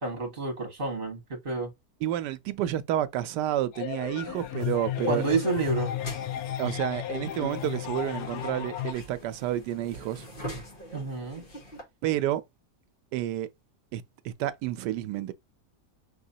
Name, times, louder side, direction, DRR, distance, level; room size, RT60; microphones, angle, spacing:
voice 1, 0.0-1.7 5.1-5.9 10.9-11.4, right 3 dB, 35° right, 1.7 m, -29 dB
voice 2, 2.0-5.2 6.6-10.2 12.0-12.4 13.1-13.5 13.9-15.3, right 12 dB, 90° right, 1.2 m, -30 dB
sound 1, 3.7-8.9, left 12 dB, 75° left, 1.2 m, -33 dB
sound 2, 4.2-11.8, right 1 dB, 35° left, 1.6 m, -44 dB
5.4 x 3.0 x 2.7 m
omnidirectional pair, 1.8 m